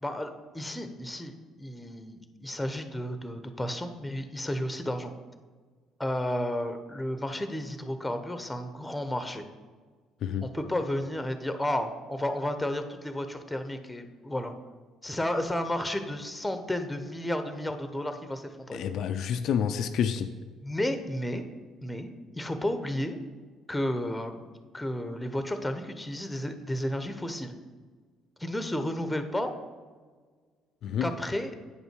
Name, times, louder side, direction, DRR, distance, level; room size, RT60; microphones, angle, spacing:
voice 1, 0.0-5.1 6.0-9.4 10.4-14.5 15.0-18.8 20.6-21.4 21.8-23.2 23.7-24.4 24.7-27.5 28.4-29.5 31.0-31.6, left 1 dB, 10° left, 8 dB, 1.0 m, -32 dB
voice 2, 10.2-10.5 18.7-20.3 30.8-31.1, left 8 dB, 65° left, 8 dB, 0.4 m, -29 dB
8.8 x 5.3 x 4.6 m, 1.5 s
hypercardioid pair, 60°, 0 cm